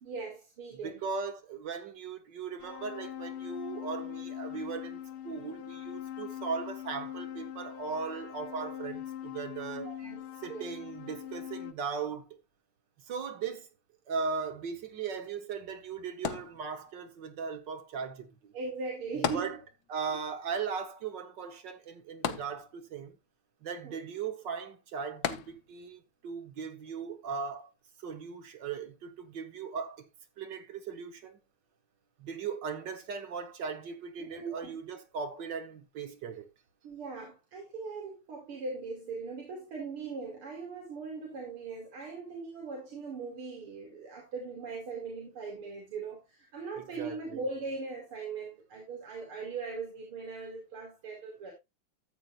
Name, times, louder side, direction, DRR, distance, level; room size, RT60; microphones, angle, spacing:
voice 1, 0.0-1.0 9.8-10.7 18.5-19.6 20.1-20.2 23.8-23.9 34.2-34.8 36.8-51.5, right 4 dB, 85° right, 3.2 m, -40 dB
voice 2, 0.8-10.0 10.4-12.4 13.0-13.7 14.1-18.5 19.3-19.6 19.9-23.2 23.6-27.7 28.0-30.1 30.4-31.4 32.2-36.5 46.8-47.4, right 5 dB, 60° right, 1.8 m, -38 dB
sound 1, 2.6-11.7, left 11 dB, 80° left, 1.6 m, -42 dB
sound 2, 16.2-17.1 19.2-20.1 20.4-20.5 22.2-23.1 25.2-26.0 26.6-26.7, left 9 dB, 60° left, 1.1 m, -35 dB
13.5 x 8.1 x 2.4 m
omnidirectional pair, 2.4 m